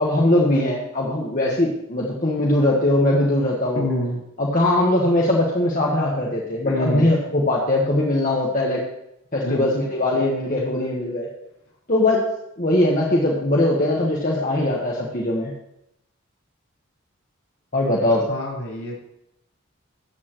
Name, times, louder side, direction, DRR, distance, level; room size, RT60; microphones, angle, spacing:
voice 1, 0.0-3.9 4.4-8.8 9.3-11.3 11.9-12.3 12.6-15.5 17.7-18.3, left 1 dB, 40° left, -3 dB, 1.3 m, -20 dB
voice 2, 3.7-4.2 6.6-7.1 9.4-9.6 18.3-19.0, left 1 dB, 70° left, -3 dB, 4.5 m, -26 dB
13.0 x 8.3 x 3.1 m, 0.82 s
head